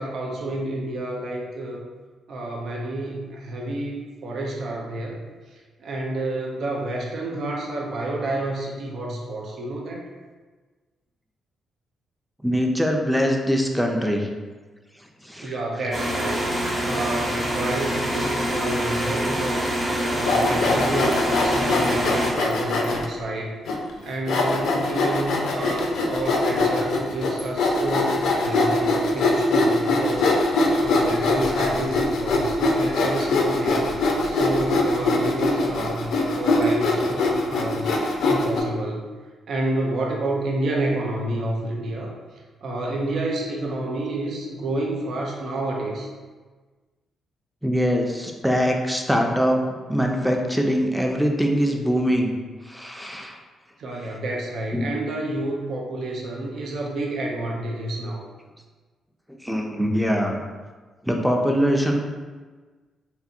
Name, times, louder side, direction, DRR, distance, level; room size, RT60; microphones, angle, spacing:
voice 1, 0.0-1.9 2.3-5.2 5.8-10.1 15.4-16.4 16.8-19.7 20.1-23.6 24.0-30.3 30.8-33.9 34.2-37.9 38.2-39.0 39.5-42.1 42.6-46.1 53.8-58.3, right 1 dB, 60° right, -1 dB, 0.4 m, -29 dB
voice 2, 12.4-14.3 15.2-15.5 47.6-49.6 49.9-52.3 52.7-53.4 54.7-54.9 59.3-60.4 61.0-62.0, equal, ahead, 1 dB, 0.5 m, -22 dB
sound 1, 15.9-22.3, equal, 40° right, 1.0 m, -25 dB
Sawing, 20.2-23.1 23.7-23.8 24.3-38.6, left 2 dB, 65° left, 0.4 m, -22 dB
2.8 x 2.5 x 2.4 m, 1.4 s
hypercardioid pair, 40°, 0 cm